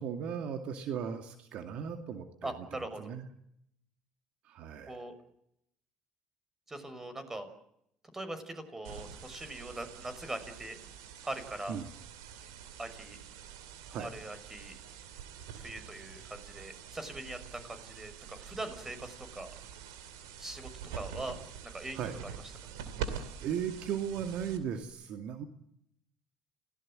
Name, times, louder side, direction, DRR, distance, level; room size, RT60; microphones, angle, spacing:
voice 1, 0.0-3.3 4.4-5.0 11.7-11.9 13.9-14.1 21.9-22.2 23.4-25.4, right 8 dB, 65° right, 7 dB, 2.2 m, -37 dB
voice 2, 2.4-3.1 4.9-5.1 6.7-7.5 8.1-10.8 11.2-11.8 12.8-13.2 13.9-14.7 15.5-19.5 20.4-21.4 21.6-22.0, right 2 dB, 20° right, 10 dB, 5.9 m, -41 dB
sound 1, 8.8-24.8, right 8 dB, 85° right, 2.7 m, -45 dB
29.0 x 18.0 x 7.6 m, 0.76 s
hypercardioid pair, 65°, 2 cm